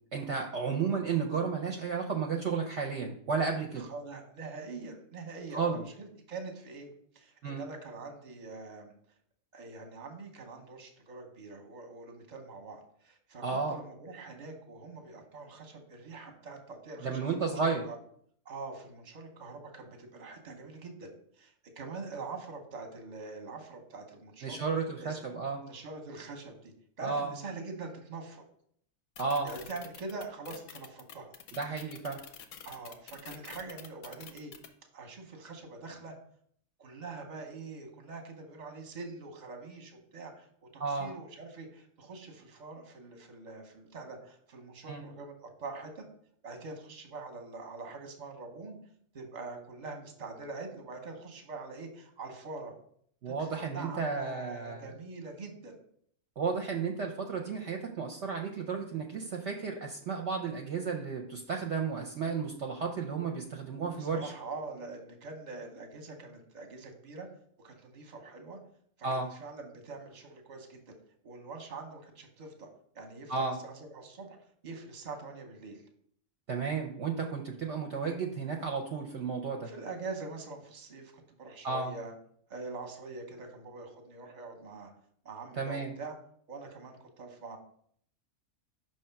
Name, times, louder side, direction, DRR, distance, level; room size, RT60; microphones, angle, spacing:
voice 1, 0.1-3.9 5.5-5.8 7.4-7.6 13.4-13.8 17.0-17.8 24.4-25.6 27.0-27.3 29.2-29.5 31.6-32.2 40.8-41.1 44.9-45.0 53.2-54.9 56.4-64.3 69.0-69.3 73.3-73.6 76.5-79.7 81.6-81.9 85.5-85.9, right 5 dB, 65° right, 2 dB, 0.8 m, -33 dB
voice 2, 3.8-6.9 7.1-8.9 9.5-18.0 18.4-24.6 25.0-25.2 25.6-28.4 29.4-31.3 32.6-34.5 34.9-36.1 36.8-40.5 40.7-46.0 46.4-48.8 49.1-52.7 53.3-55.8 63.9-67.3 67.6-68.6 69.0-70.9 71.2-72.7 72.9-74.4 74.6-75.8 79.6-82.1 82.5-84.9 85.2-86.2 86.5-87.6, right 3 dB, 35° right, 4 dB, 0.9 m, -44 dB
sound 1, 29.2-34.7, left 8 dB, 85° left, 1.1 m, -47 dB
5.6 x 3.2 x 5.7 m, 0.64 s
omnidirectional pair, 1.4 m